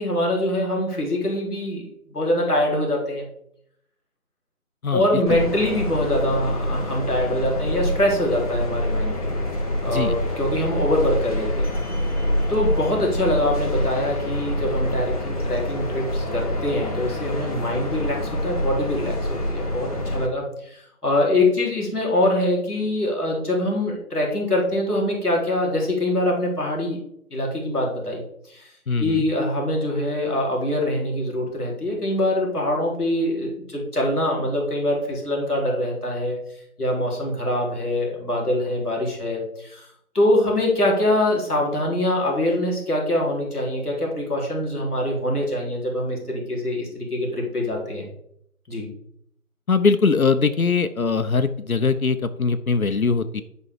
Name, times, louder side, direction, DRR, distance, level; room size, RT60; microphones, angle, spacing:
voice 1, 0.0-3.2 4.9-9.3 9.8-11.7 12.5-27.0 27.3-28.2 28.5-28.7 29.0-36.4 36.8-39.8 40.1-48.1 48.7-48.9, left 1 dB, ahead, -23 dB, 1.7 m, -24 dB
voice 2, 4.8-5.4 9.9-10.1 28.9-29.3 49.7-53.4, left 4 dB, 65° left, 9 dB, 0.9 m, -21 dB
sound 1, 5.3-20.3, left 1 dB, 25° left, 1.4 m, -26 dB
10.5 x 5.5 x 4.8 m, 0.74 s
figure-of-eight pair, 170°, 45 cm